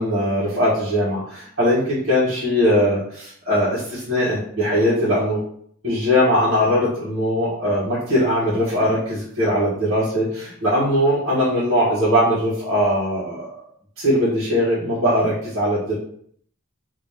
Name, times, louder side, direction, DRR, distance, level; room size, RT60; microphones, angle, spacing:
voice 1, 0.0-5.4 5.8-13.6 14.0-16.0, equal, 65° right, -10 dB, 1.4 m, -20 dB
2.9 x 2.8 x 3.5 m, 0.63 s
head